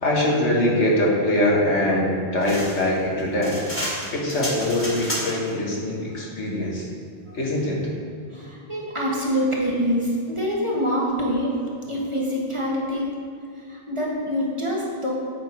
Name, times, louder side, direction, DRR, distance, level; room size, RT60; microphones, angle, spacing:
voice 1, 0.0-3.5 4.1-6.9 7.3-7.8, left 1 dB, 75° left, -4 dB, 1.8 m, -22 dB
sound 1, 2.4-5.5, equal, 10° left, 1.6 m, -31 dB
voice 2, 8.3-11.5 11.9-13.1 13.7-15.1, equal, 25° right, -4 dB, 1.3 m, -25 dB
8.5 x 5.7 x 4.5 m, 2.3 s
omnidirectional pair, 1.2 m